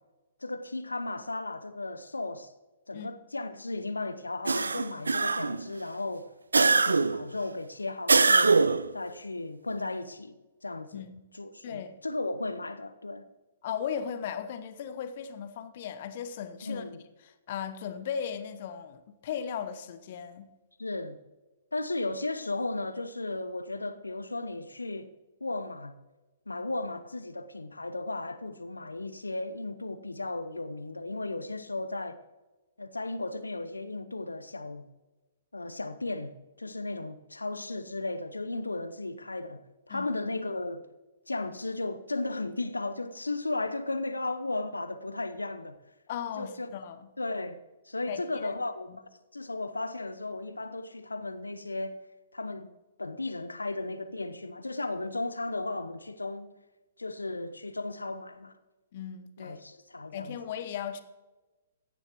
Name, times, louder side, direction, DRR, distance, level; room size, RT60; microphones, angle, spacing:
voice 1, 0.4-2.5 2.9-8.6 8.9-11.1 11.3-13.3 16.6-17.0 20.8-21.2 21.7-25.1 25.4-25.9 26.5-32.2 32.8-34.8 35.5-40.9 41.3-45.8 46.4-46.7 47.2-47.6 47.9-48.9 49.3-52.0 52.3-52.7 53.0-56.5 57.0-58.5 59.4-60.4, left 2 dB, 80° left, 0.8 m, -35 dB
sound 1, 4.5-5.7 6.5-7.3 8.1-8.9, right 4 dB, 75° right, 0.4 m, -23 dB
voice 2, 10.9-11.2 11.6-12.0 13.6-16.8 17.5-20.5 39.9-40.1 46.1-47.1 48.1-48.6 48.9-49.0 58.9-59.6 60.1-61.0, left 8 dB, 45° left, 1.0 m, -37 dB
16.0 x 10.5 x 3.0 m
figure-of-eight pair, 120°, 0 cm